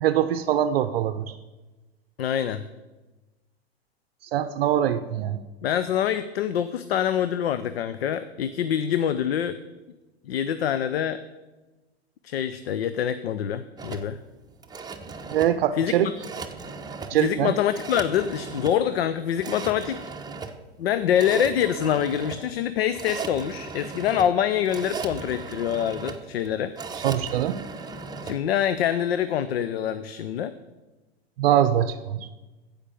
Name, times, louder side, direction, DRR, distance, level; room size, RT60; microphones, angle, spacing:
voice 1, 0.0-1.3 4.2-5.4 15.3-16.1 17.1-17.5 27.0-27.6 31.4-32.3, right 11 dB, 65° right, 11 dB, 0.6 m, -23 dB
voice 2, 2.2-2.6 5.6-9.6 10.3-11.2 12.2-14.2 15.8-16.1 17.1-20.0 20.8-26.7 28.2-30.5, left 9 dB, 70° left, 12 dB, 0.6 m, -25 dB
sound 1, 13.8-28.4, right 4 dB, 10° right, 0.8 m, -37 dB
15.0 x 5.2 x 6.9 m, 1.1 s
hypercardioid pair, 95°, 31 cm